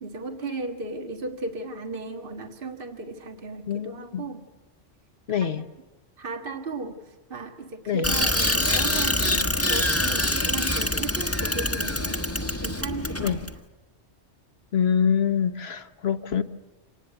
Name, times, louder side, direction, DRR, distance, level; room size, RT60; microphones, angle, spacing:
voice 1, 0.0-4.4 5.3-5.5 6.2-13.5, right 3 dB, 45° right, 1.7 m, -36 dB
voice 2, 3.7-4.2 5.3-5.6 7.9-8.1 13.2-13.4 14.7-16.4, left 8 dB, 60° left, 1.3 m, -25 dB
Bicycle, 8.0-13.5, left 1 dB, 10° left, 1.3 m, -25 dB
27.0 x 19.5 x 8.0 m
omnidirectional pair, 1.2 m